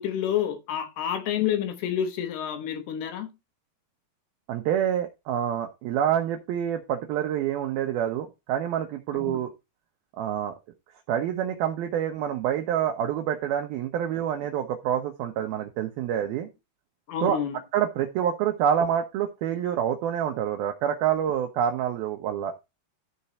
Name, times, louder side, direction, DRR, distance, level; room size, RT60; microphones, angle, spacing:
voice 1, 0.0-3.3 9.3-9.4 17.1-17.6, left 9 dB, 70° left, 3.0 m, -28 dB
voice 2, 4.5-9.5 10.1-10.5 11.1-16.5 17.2-17.4 17.7-22.5, right 9 dB, 75° right, 2.4 m, -27 dB
13.0 x 4.6 x 4.2 m
omnidirectional pair, 5.2 m